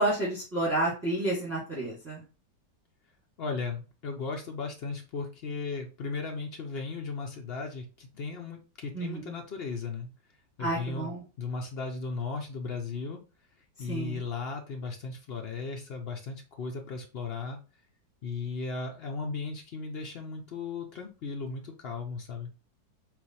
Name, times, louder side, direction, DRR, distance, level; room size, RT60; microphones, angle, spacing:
voice 1, 0.0-2.2 8.9-9.4 10.6-11.2 13.9-14.2, right 2 dB, 10° right, -4 dB, 1.1 m, -30 dB
voice 2, 3.4-10.1 10.6-11.1 11.4-13.2 13.8-17.6 18.2-22.5, left 4 dB, 75° left, 2 dB, 0.5 m, -36 dB
4.2 x 2.5 x 4.1 m, 0.33 s
omnidirectional pair, 2.0 m